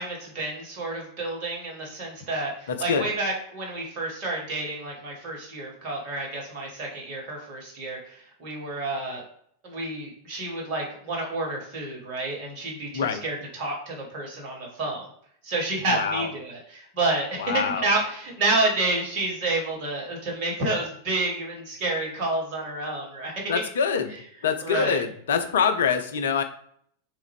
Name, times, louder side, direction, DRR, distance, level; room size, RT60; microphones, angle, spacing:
voice 1, 0.0-9.2 9.6-15.1 15.4-23.3 24.6-25.0, right 2 dB, 45° right, 0 dB, 1.3 m, -29 dB
voice 2, 2.7-3.1 12.9-13.2 15.9-16.3 17.4-17.9 23.5-24.1 24.4-26.4, left 6 dB, 60° left, 8 dB, 0.4 m, -25 dB
3.5 x 2.4 x 3.5 m, 0.66 s
figure-of-eight pair, 90°, 0 cm